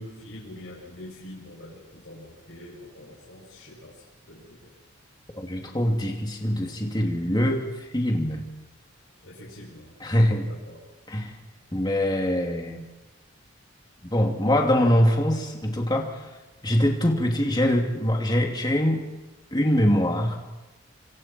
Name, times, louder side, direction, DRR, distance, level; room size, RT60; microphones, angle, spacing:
voice 1, 0.0-4.7 9.2-9.9 10.4-10.8, left 1 dB, 60° left, -5 dB, 7.2 m, -44 dB
voice 2, 5.4-7.7 7.9-8.5 10.0-10.5 11.1-11.3 11.7-12.8 14.0-16.1 16.6-19.0 19.5-20.4, equal, 20° left, 1 dB, 2.8 m, -23 dB
26.5 x 26.0 x 4.6 m, 1.1 s
head